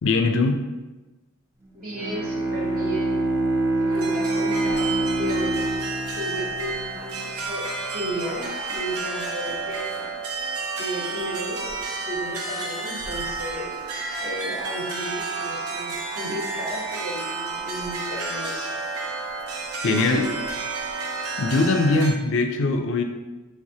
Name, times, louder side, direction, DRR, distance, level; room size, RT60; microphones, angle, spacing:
voice 1, 0.0-0.6 19.8-20.3 21.4-23.0, left 3 dB, 60° left, 6 dB, 0.4 m, -21 dB
voice 2, 1.7-3.2 3.8-5.6 6.1-9.9 10.8-13.8 14.2-18.7 19.8-20.3, right 1 dB, 45° right, -5 dB, 1.2 m, -33 dB
Bowed string instrument, 1.8-7.5, right 2 dB, 10° right, 0.4 m, -26 dB
sound 1, 3.9-22.1, right 3 dB, 85° right, 0.6 m, -31 dB
4.7 x 3.3 x 2.7 m, 1.1 s
head